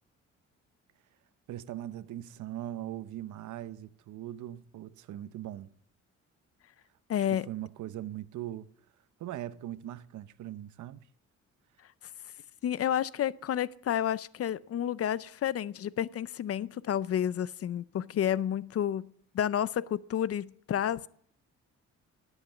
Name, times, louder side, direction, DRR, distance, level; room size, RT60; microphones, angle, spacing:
voice 1, 1.5-5.7 7.3-8.7 9.2-11.0, right 12 dB, 75° right, 0.8 m, -40 dB
voice 2, 7.1-7.5 12.6-19.1 19.3-21.1, left 10 dB, 50° left, 0.6 m, -30 dB
18.5 x 8.1 x 7.2 m
cardioid pair, 90°, 30 cm